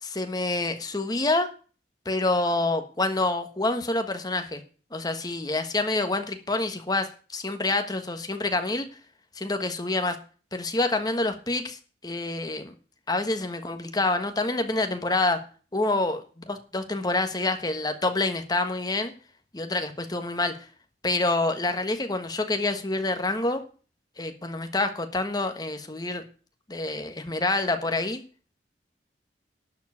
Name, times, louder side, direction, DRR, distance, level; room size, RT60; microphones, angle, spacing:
voice 1, 0.0-1.5 2.0-4.6 4.9-8.8 9.4-10.2 10.5-12.7 13.1-15.4 15.7-19.1 19.5-20.5 21.0-23.6 24.2-26.2 26.7-28.2, left 2 dB, 25° left, 7 dB, 1.3 m, -27 dB
11.5 x 4.7 x 8.4 m, 0.37 s
head